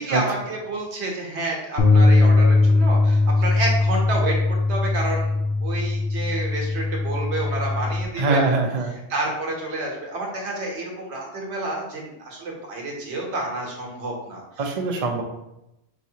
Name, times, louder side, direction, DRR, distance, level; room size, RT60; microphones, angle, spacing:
voice 1, 0.0-5.4 5.6-8.4 9.1-14.4, right 2 dB, 75° right, -1 dB, 1.2 m, -29 dB
sound 1, 1.8-8.0, left 3 dB, 75° left, 1.0 m, -20 dB
voice 2, 8.2-8.9 14.6-15.2, right 3 dB, 45° right, 1 dB, 0.5 m, -22 dB
4.7 x 3.1 x 2.7 m, 0.88 s
omnidirectional pair, 1.2 m